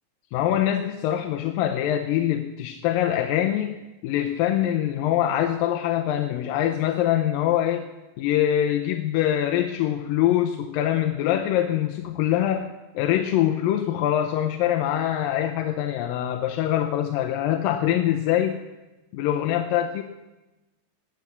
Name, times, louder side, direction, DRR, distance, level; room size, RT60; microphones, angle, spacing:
voice 1, 0.3-3.8 4.0-7.8 8.2-18.6 19.1-20.0, left 11 dB, 85° left, 5 dB, 2.5 m, -24 dB
19.0 x 8.4 x 7.2 m, 1.1 s
omnidirectional pair, 4.0 m